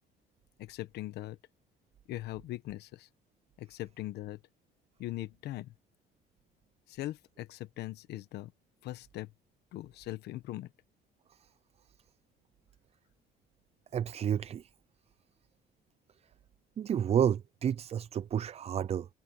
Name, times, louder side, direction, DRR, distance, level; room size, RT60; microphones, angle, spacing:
voice 1, 0.6-1.4 2.1-3.1 3.6-4.4 5.0-5.7 6.9-8.5 8.8-9.3 9.7-10.7, left 15 dB, 75° left, 1.2 m, -40 dB
voice 2, 13.9-14.7 16.8-19.1, right 9 dB, 40° right, 0.5 m, -30 dB
cardioid pair, 110°, 17 cm